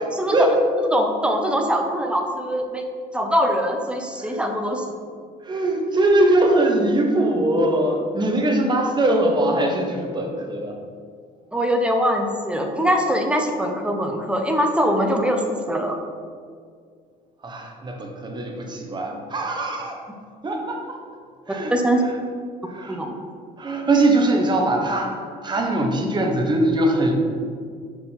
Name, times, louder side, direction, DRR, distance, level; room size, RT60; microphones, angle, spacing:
voice 1, 0.1-2.8 3.1-4.8 11.5-16.0 21.7-22.0 22.9-23.2, equal, 5° right, 3 dB, 0.7 m, -22 dB
voice 2, 5.4-10.7 17.4-20.0 20.4-21.0 21.5-21.7 22.7-23.0 23.6-25.1 25.4-27.1, right 1 dB, 25° right, 2 dB, 1.0 m, -21 dB
5.6 x 4.6 x 4.1 m, 2.1 s
cardioid pair, 110°, 17 cm